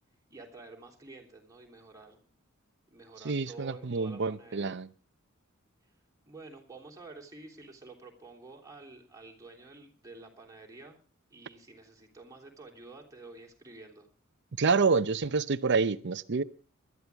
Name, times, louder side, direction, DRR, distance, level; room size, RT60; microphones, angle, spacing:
voice 1, 0.3-2.2 2.9-4.8 6.3-11.0 11.3-14.1, right 3 dB, 15° right, 3.4 m, -50 dB
voice 2, 3.2-4.9 14.6-16.4, right 4 dB, 55° right, 0.7 m, -27 dB
20.5 x 12.0 x 3.5 m
head